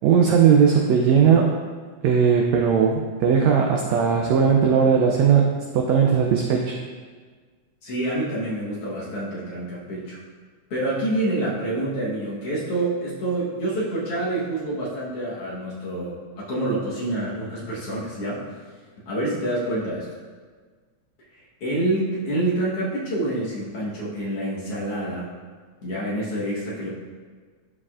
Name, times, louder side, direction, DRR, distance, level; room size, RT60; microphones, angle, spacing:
voice 1, 0.0-1.5 2.0-5.5 5.7-6.8, right 7 dB, 85° right, 1 dB, 1.6 m, -18 dB
voice 2, 7.8-10.2 10.7-18.4 19.1-20.1 21.3-25.3 25.8-26.9, right 1 dB, 55° left, -7 dB, 1.9 m, -27 dB
11.5 x 4.8 x 2.4 m, 1.5 s
omnidirectional pair, 3.7 m